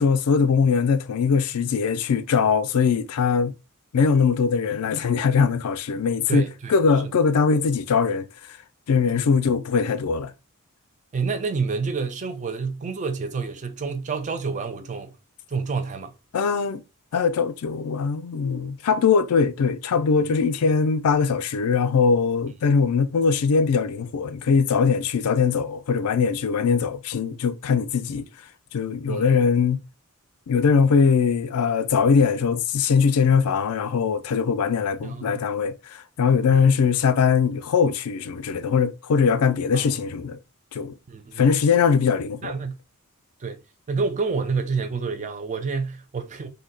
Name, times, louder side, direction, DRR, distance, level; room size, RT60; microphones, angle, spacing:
voice 1, 0.0-3.5 3.9-6.4 6.7-8.3 8.9-10.3 16.3-16.8 17.1-28.3 28.7-29.8 30.5-40.4 40.7-40.9 41.4-42.5, left 5 dB, 75° left, 0.4 m, -21 dB
voice 2, 6.3-6.8 9.1-9.3 11.1-15.1 15.5-16.1 20.2-20.3 29.1-29.3 35.0-35.4 36.5-36.7 39.7-40.0 41.1-41.5 42.4-42.8 43.4-43.6 43.9-46.5, right 4 dB, 35° right, 0.4 m, -28 dB
2.7 x 2.2 x 3.8 m
head